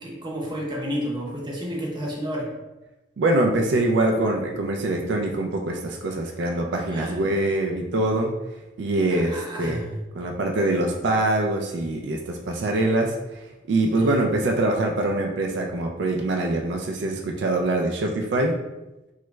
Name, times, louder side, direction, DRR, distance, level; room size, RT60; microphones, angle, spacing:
voice 1, 0.0-2.5 6.9-7.2 9.0-9.9 13.9-14.2, equal, 25° right, -2 dB, 0.7 m, -31 dB
voice 2, 3.2-8.3 8.8-9.8 10.1-13.1 13.7-18.5, right 2 dB, 75° right, 2 dB, 0.4 m, -24 dB
3.0 x 2.3 x 3.1 m, 1.0 s
head